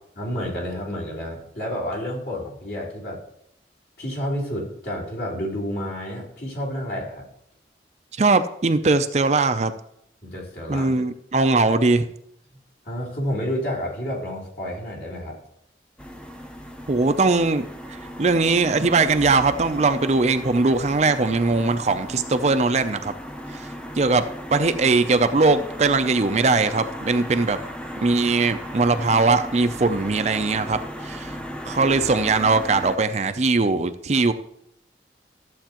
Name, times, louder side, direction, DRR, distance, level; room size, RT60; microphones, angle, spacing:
voice 1, 0.1-3.2 4.0-7.2 10.2-10.9 12.8-15.4, equal, 55° left, -5 dB, 3.4 m, -30 dB
voice 2, 8.1-9.7 10.7-12.1 16.9-17.6 17.9-23.1 23.5-23.6 24.0-27.6 28.0-31.4 31.7-34.3, right 3 dB, 40° right, 9 dB, 0.5 m, -20 dB
sound 1, 16.0-33.0, equal, 5° left, 0.6 m, -36 dB
13.5 x 7.8 x 3.0 m, 0.74 s
head